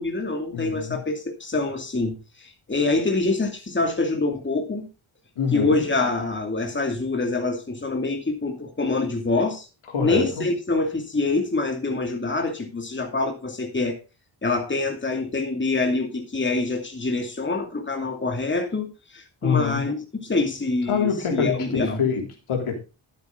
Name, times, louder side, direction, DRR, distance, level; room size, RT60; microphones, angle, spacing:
voice 1, 0.0-4.9 5.5-9.7 10.0-14.0 14.4-22.0, left 3 dB, 25° left, 2.5 m, -25 dB
voice 2, 0.5-1.0 5.4-5.8 9.9-10.4 19.4-19.9 20.9-22.7, left 6 dB, 80° left, 3.6 m, -25 dB
11.5 x 9.2 x 3.9 m
wide cardioid pair, 110°, 49 cm